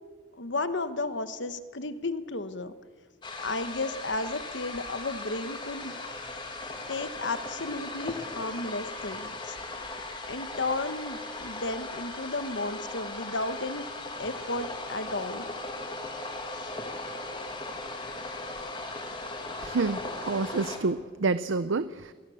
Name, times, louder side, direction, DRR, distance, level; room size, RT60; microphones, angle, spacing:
voice 1, 0.4-2.7 3.4-5.9 6.9-9.6 10.3-13.9 14.2-15.5 16.6-16.7, left 2 dB, 70° left, 11 dB, 1.3 m, -33 dB
sound 1, 3.2-20.8, left 2 dB, 25° left, 2.5 m, -38 dB
voice 2, 19.6-22.1, right 3 dB, 80° right, 14 dB, 0.6 m, -28 dB
27.0 x 19.5 x 7.2 m, 1.5 s
head